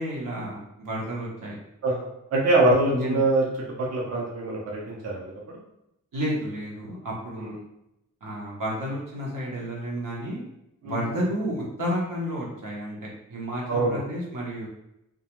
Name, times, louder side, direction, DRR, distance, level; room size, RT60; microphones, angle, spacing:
voice 1, 0.0-1.6 2.9-3.2 6.1-7.5 8.2-10.4 10.8-14.7, equal, 90° right, -4 dB, 0.9 m, -31 dB
voice 2, 1.8-3.4 3.8-5.6 7.4-7.6 10.8-10.9 13.7-14.0, right 2 dB, 55° right, -3 dB, 0.6 m, -24 dB
2.3 x 2.2 x 2.9 m, 0.84 s
wide cardioid pair, 155°, 31 cm